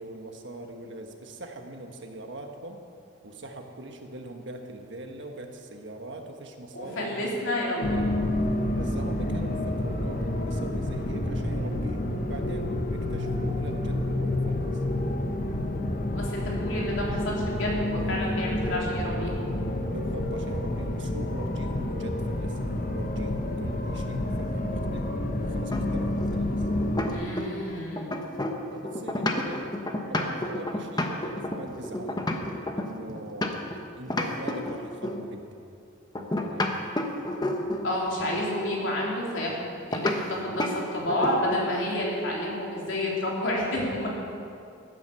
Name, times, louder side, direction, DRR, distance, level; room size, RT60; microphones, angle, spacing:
voice 1, 0.0-2.8 3.2-7.3 8.8-14.8 19.8-26.7 28.7-29.6 30.1-32.2 32.7-33.6 33.9-35.4 36.1-36.7, right 1 dB, 60° right, 4 dB, 1.4 m, -41 dB
voice 2, 6.7-8.0 16.1-19.3 27.1-28.2 37.8-44.1, left 1 dB, 70° left, -3 dB, 3.5 m, -30 dB
sound 1, 7.8-27.0, left 1 dB, 45° left, 1.1 m, -29 dB
sound 2, 25.7-27.7 28.0-33.8 34.1-35.3 36.1-37.9 39.9-40.2 40.6-40.8 41.1-41.7, left 1 dB, 20° left, 1.0 m, -30 dB
15.0 x 9.4 x 6.9 m, 2.5 s
head